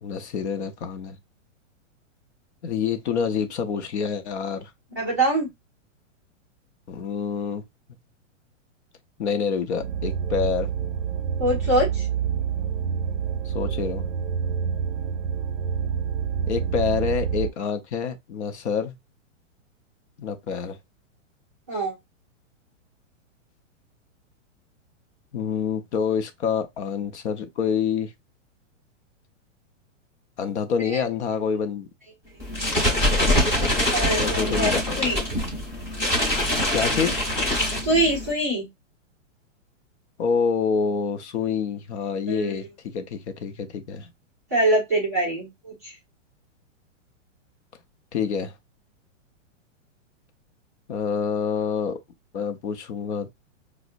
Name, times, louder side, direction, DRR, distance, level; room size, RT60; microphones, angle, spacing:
voice 1, 0.0-1.2 2.6-4.7 6.9-7.6 9.2-10.7 13.4-14.1 16.5-19.0 20.2-20.8 25.3-28.1 30.4-31.9 34.2-35.0 36.7-37.2 40.2-44.1 48.1-48.5 50.9-52.0 52.3-53.3, left 6 dB, 60° left, 0.6 m, -27 dB
voice 2, 5.0-5.5 11.4-12.1 21.7-21.9 30.9-31.0 33.9-35.3 37.8-38.7 42.3-42.6 44.5-45.9, right 1 dB, 15° right, 0.4 m, -24 dB
sound 1, 9.8-17.5, right 7 dB, 85° right, 0.5 m, -27 dB
sound 2, 32.4-38.3, left 1 dB, 15° left, 0.8 m, -24 dB
5.1 x 2.1 x 2.4 m
supercardioid pair, 175°, 38 cm